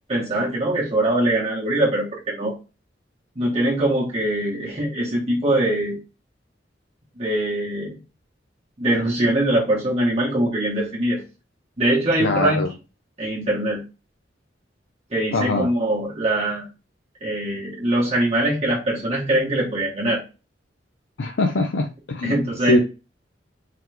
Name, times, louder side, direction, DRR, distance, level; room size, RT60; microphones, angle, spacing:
voice 1, 0.1-2.5 3.3-6.0 7.2-8.0 8.8-11.2 11.8-12.6 13.2-13.8 15.1-16.6 17.2-20.2 22.2-22.8, right 1 dB, 35° right, -5 dB, 1.3 m, -22 dB
voice 2, 12.2-12.7 15.3-15.7 21.2-22.4 22.7-22.8, left 2 dB, 80° left, 3 dB, 0.6 m, -22 dB
3.9 x 3.0 x 3.3 m, 0.30 s
head